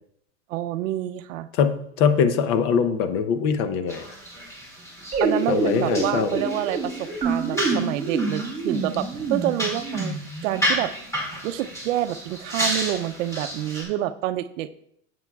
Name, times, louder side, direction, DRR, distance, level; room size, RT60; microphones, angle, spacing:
voice 1, 0.5-1.5 5.2-10.2 10.4-10.9 11.4-14.7, right 13 dB, 75° right, 12 dB, 0.6 m, -28 dB
voice 2, 1.5-4.1 5.5-6.4, left 6 dB, 50° left, 10 dB, 0.7 m, -22 dB
sound 1, 3.9-13.8, equal, 5° left, 2.1 m, -32 dB
sound 2, 5.1-10.6, right 3 dB, 20° right, 1.4 m, -27 dB
10.5 x 7.7 x 2.3 m, 0.72 s
supercardioid pair, 150°, 39 cm